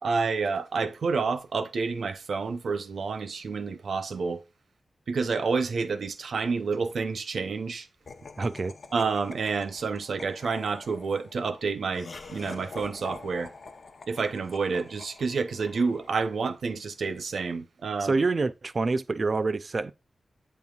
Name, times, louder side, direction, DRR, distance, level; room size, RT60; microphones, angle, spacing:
voice 1, 0.0-4.4 5.1-7.9 8.9-13.5 14.1-18.2, right 4 dB, 75° right, 0.7 m, -29 dB
Laughter, 8.1-16.4, left 4 dB, 55° left, 0.8 m, -46 dB
voice 2, 8.4-8.7 18.0-19.9, right 3 dB, 45° right, 0.4 m, -26 dB
8.2 x 5.5 x 2.4 m
wide cardioid pair, 100°, 0 cm